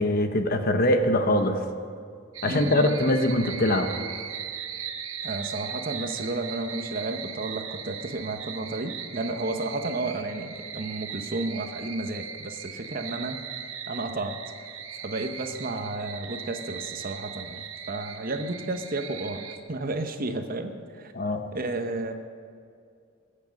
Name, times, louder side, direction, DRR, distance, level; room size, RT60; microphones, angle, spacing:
voice 1, 0.0-1.6 2.4-3.9 21.1-21.5, left 1 dB, 45° left, 6 dB, 1.0 m, -23 dB
sound 1, 2.3-19.6, right 7 dB, 75° right, 1.1 m, -38 dB
voice 2, 2.4-2.9 5.2-13.4 13.9-14.4 15.0-21.1 21.5-22.1, right 2 dB, 45° right, 7 dB, 0.9 m, -32 dB
20.5 x 8.7 x 5.3 m, 2.3 s
head